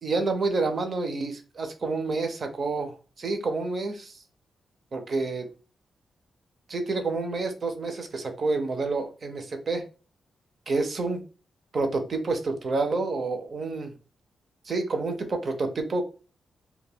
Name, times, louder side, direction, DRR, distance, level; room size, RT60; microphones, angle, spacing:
voice 1, 0.0-4.2 4.9-5.5 6.7-9.8 10.7-11.2 11.7-13.9 14.6-16.0, right 3 dB, 45° right, 6 dB, 0.5 m, -28 dB
2.2 x 2.1 x 3.4 m, 0.34 s
wide cardioid pair, 130°, 0 cm